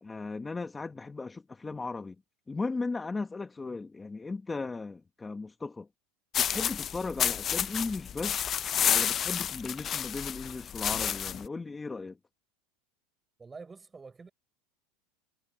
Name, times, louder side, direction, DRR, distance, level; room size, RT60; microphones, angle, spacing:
voice 1, 0.0-2.2 2.5-5.9 6.4-8.5 8.9-12.2, left 3 dB, 15° left, 1.1 m, -36 dB
sound 1, 6.3-11.5, left 9 dB, 30° left, 0.4 m, -30 dB
voice 2, 13.4-14.3, right 4 dB, 15° right, 5.9 m, -48 dB
supercardioid pair, 130°, 0 cm